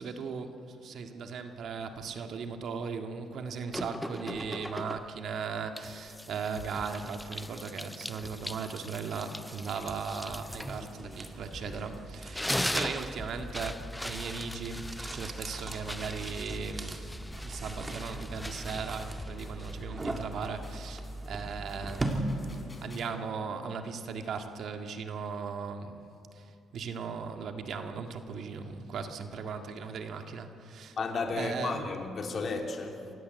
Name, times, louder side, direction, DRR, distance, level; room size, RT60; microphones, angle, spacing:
voice 1, 0.0-17.1 17.4-22.3 22.8-26.0 26.3-31.0 31.4-31.8, right 5 dB, 65° right, 1.9 m, -38 dB
sound 1, 3.7-5.3 5.8-11.8 12.1-20.0, left 1 dB, 5° left, 0.4 m, -40 dB
sound 2, 6.6-17.8 18.1-23.1, left 2 dB, 25° left, 4.2 m, -50 dB
sound 3, 10.4-22.8, right 1 dB, 25° right, 2.4 m, -39 dB
voice 2, 31.0-33.1, left 4 dB, 50° left, 3.0 m, -34 dB
28.0 x 16.0 x 8.1 m
cardioid pair, 90°, 0 cm